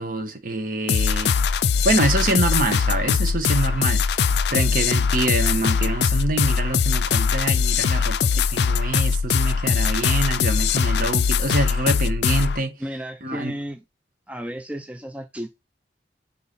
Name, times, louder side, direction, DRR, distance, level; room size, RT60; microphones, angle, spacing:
voice 1, 0.0-1.3 1.8-4.0 4.5-8.2 8.5-12.7 13.2-13.5, right 2 dB, 50° right, 1.1 m, -25 dB
sound 1, 0.9-12.6, left 6 dB, 65° left, 0.4 m, -21 dB
voice 2, 12.8-13.8 14.3-15.5, equal, 10° right, 0.4 m, -33 dB
5.6 x 4.1 x 4.1 m
head